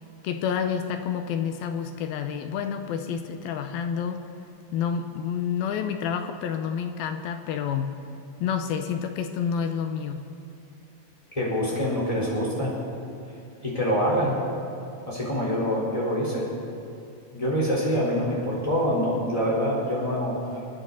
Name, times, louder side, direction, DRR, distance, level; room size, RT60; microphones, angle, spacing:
voice 1, 0.2-4.2 4.7-7.9 8.4-10.3, left 7 dB, 80° left, 7 dB, 2.4 m, -29 dB
voice 2, 11.3-12.7 13.6-14.4 15.1-16.5 17.3-20.4, equal, 10° left, -6 dB, 3.7 m, -25 dB
27.5 x 9.8 x 4.1 m, 2.7 s
omnidirectional pair, 4.4 m